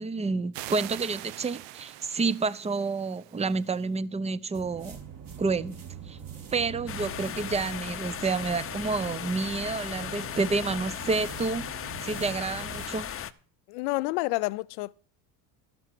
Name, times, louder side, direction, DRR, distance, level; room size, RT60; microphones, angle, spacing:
voice 1, 0.0-5.0 5.4-5.8 6.1-6.2 6.5-11.7 12.0-13.1, right 4 dB, 15° right, 0.5 m, -29 dB
sound 1, 0.5-3.8, right 15 dB, 75° right, 0.7 m, -43 dB
sound 2, 4.5-12.9, right 7 dB, 50° right, 3.0 m, -44 dB
sound 3, 6.9-13.3, left 10 dB, 30° left, 0.7 m, -37 dB
voice 2, 13.7-14.9, left 21 dB, 85° left, 0.5 m, -29 dB
12.5 x 6.0 x 7.5 m
supercardioid pair, 95°, 43 cm